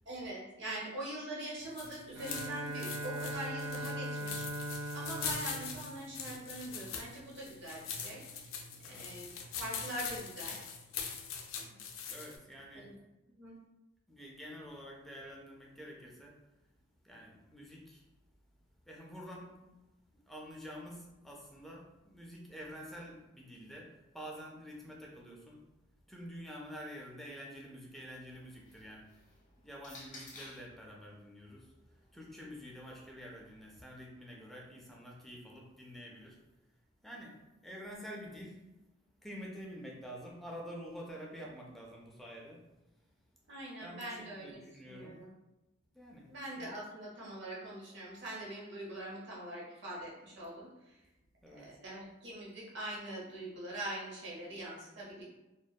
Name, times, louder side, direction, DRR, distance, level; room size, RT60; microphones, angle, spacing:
voice 1, 0.1-4.5 4.9-8.2 8.8-10.6 12.7-12.9 13.4-13.6 43.5-45.3 46.3-51.0 51.5-55.2, right 1 dB, 60° right, -5 dB, 0.8 m, -43 dB
sound 1, 1.6-12.4, left 6 dB, 85° left, 0.4 m, -43 dB
Bowed string instrument, 2.1-6.9, equal, 80° right, 0.4 m, -41 dB
voice 2, 8.8-9.1 12.1-12.9 14.1-16.4 17.0-18.0 18.9-19.5 20.3-25.6 26.1-29.1 29.6-31.7 32.1-36.4 37.0-37.3 37.6-38.6 39.2-42.6 43.8-45.2 45.9-46.3 51.4-51.7, equal, ahead, -2 dB, 0.3 m, -48 dB
sound 2, 28.4-30.8 31.7-33.8, left 2 dB, 40° left, 0.7 m, -56 dB
2.6 x 2.1 x 2.2 m, 1.0 s
head